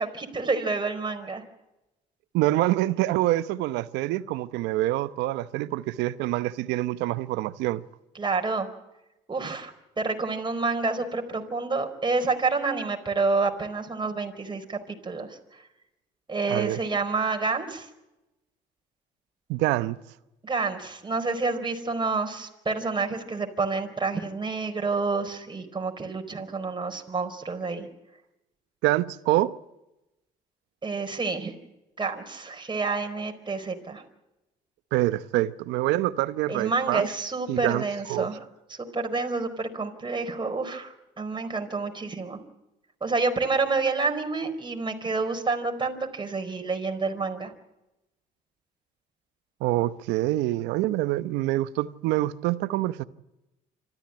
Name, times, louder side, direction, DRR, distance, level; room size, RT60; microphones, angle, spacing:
voice 1, 0.0-1.4 8.1-8.7 9.3-14.8 15.0-15.4 16.3-17.9 20.4-27.9 30.8-31.6 32.0-34.0 36.5-38.4 38.7-42.4 43.0-47.5, right 4 dB, 25° right, 4.5 m, -28 dB
voice 2, 2.3-7.8 16.5-16.8 19.5-20.0 28.8-29.5 34.9-37.1 37.5-38.3 49.6-53.0, right 16 dB, 80° right, 0.9 m, -26 dB
26.5 x 14.0 x 8.8 m
supercardioid pair, 65°, 18 cm